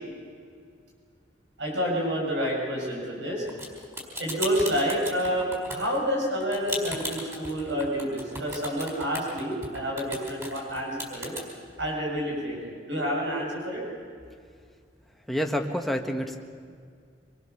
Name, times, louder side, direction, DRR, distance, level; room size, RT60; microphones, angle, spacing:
voice 1, 1.6-3.4 4.2-11.3 11.8-13.8, equal, 85° right, -2 dB, 7.4 m, -29 dB
sound 1, 3.5-11.4, equal, 15° right, 4.8 m, -36 dB
voice 2, 15.3-16.4, equal, ahead, 3 dB, 1.5 m, -28 dB
25.5 x 22.5 x 7.1 m, 2.1 s
head